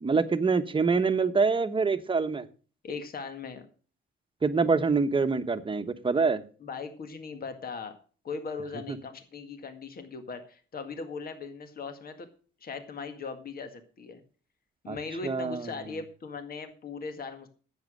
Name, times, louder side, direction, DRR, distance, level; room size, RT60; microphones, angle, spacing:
voice 1, 0.0-2.5 4.4-6.4 14.9-15.0 15.2-15.7, right 4 dB, 25° right, 10 dB, 1.1 m, -25 dB
voice 2, 2.8-3.7 6.6-7.9 8.2-12.3 12.6-14.2 14.8-17.5, left 4 dB, 50° left, 8 dB, 1.9 m, -39 dB
10.5 x 8.3 x 6.4 m, 0.39 s
cardioid pair, 90°, 20 cm